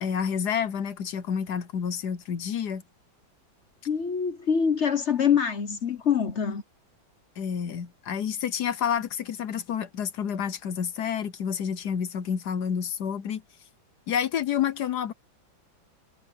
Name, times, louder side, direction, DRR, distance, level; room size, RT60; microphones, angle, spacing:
voice 1, 0.0-2.8 7.4-13.4 14.1-15.1, left 8 dB, 65° left, 1.3 m, -29 dB
voice 2, 3.9-6.6, left 7 dB, 45° left, 1.0 m, -25 dB
omnidirectional pair, 2.1 m